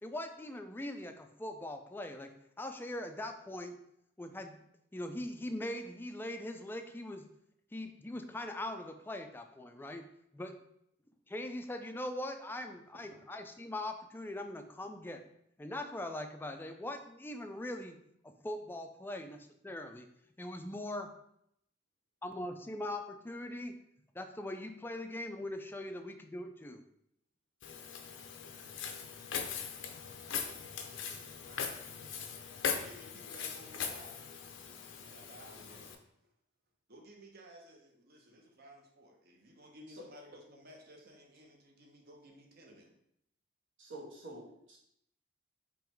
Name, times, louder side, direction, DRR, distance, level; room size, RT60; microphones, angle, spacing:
voice 1, 0.0-2.3 2.6-3.8 4.2-4.6 4.9-7.3 7.7-10.0 10.3-10.6 11.3-15.2 15.6-18.0 18.2-19.4 19.6-20.1 20.4-21.1 22.2-23.7 24.1-26.8, left 1 dB, 10° left, 6 dB, 0.3 m, -41 dB
Walk footsteps, 27.6-36.0, left 6 dB, 70° left, 0.5 m, -40 dB
voice 2, 30.3-32.1 32.6-34.3 35.1-36.3 36.9-42.9, right 1 dB, 50° right, 2 dB, 0.8 m, -56 dB
voice 3, 43.8-44.8, right 1 dB, 70° right, -3 dB, 1.3 m, -47 dB
3.8 x 3.0 x 4.4 m, 0.75 s
head